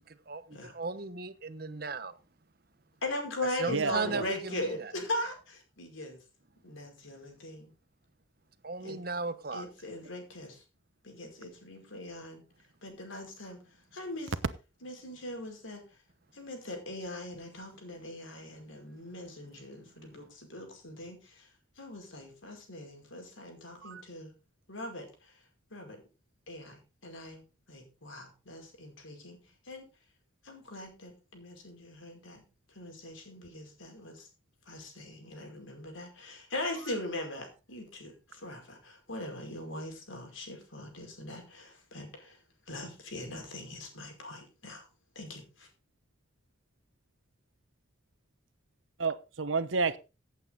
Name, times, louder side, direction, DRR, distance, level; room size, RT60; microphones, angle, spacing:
voice 1, 0.1-2.1 3.6-4.9 8.6-9.6, right 3 dB, 50° right, 1.0 m, -36 dB
voice 2, 3.0-6.2 6.6-7.7 8.8-9.0 9.5-10.6 11.0-12.4 12.8-13.6 13.9-14.3 14.8-15.8 16.3-21.5 21.8-24.3 24.7-25.1 25.7-26.0 26.5-27.4 27.7-29.4 29.7-29.9 30.4-32.4 32.8-34.3 34.7-42.4 42.7-44.9 45.2-45.7, left 1 dB, 90° left, 5.2 m, -40 dB
voice 3, 3.7-4.2 23.8-24.0 49.0-50.0, right 4 dB, 85° right, 1.0 m, -30 dB
16.5 x 8.2 x 4.0 m
head